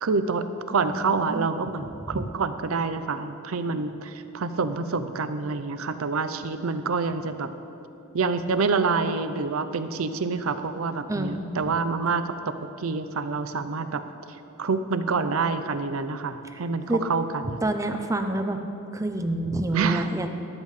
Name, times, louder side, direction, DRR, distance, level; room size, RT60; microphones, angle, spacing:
voice 1, 0.0-7.5 8.1-14.0 14.6-17.6 19.7-20.1, right 4 dB, 70° right, 10 dB, 0.6 m, -27 dB
voice 2, 0.8-1.5 2.0-2.2 11.1-11.4 16.5-16.6 16.9-17.0 17.6-18.6 18.9-20.3, right 1 dB, 15° right, 6 dB, 0.6 m, -28 dB
13.5 x 12.5 x 3.3 m, 2.8 s
head